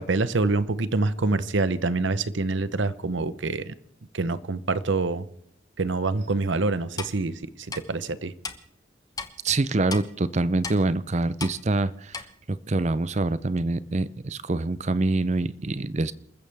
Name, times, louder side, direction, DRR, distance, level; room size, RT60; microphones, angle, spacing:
voice 1, 0.0-3.7 4.1-5.3 5.8-7.4 7.9-8.3, right 3 dB, 75° right, 0.9 m, -26 dB
Clock, 7.0-7.1 7.7-7.8 8.4-8.6 9.2-9.3 9.9-10.0 10.6-10.8 11.4-11.6 12.1-12.2, left 4 dB, 20° left, 1.0 m, -34 dB
voice 2, 9.4-12.2 12.5-16.1, right 2 dB, 35° right, 0.6 m, -25 dB
28.5 x 14.5 x 3.5 m
head